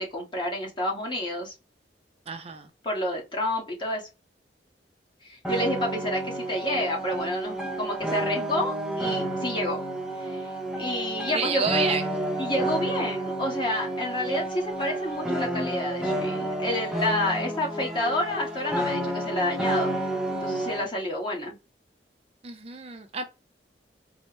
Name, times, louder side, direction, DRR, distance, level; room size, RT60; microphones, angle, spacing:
voice 1, 0.0-1.5 2.8-4.0 5.2-9.8 10.2-10.5 10.8-11.6 12.4-21.6, left 1 dB, 25° left, 1.4 m, -29 dB
voice 2, 2.3-2.7 11.3-12.2 22.4-23.2, right 5 dB, 35° right, 0.4 m, -30 dB
sound 1, 5.4-20.9, right 1 dB, 5° right, 0.7 m, -30 dB
4.3 x 2.1 x 2.9 m
head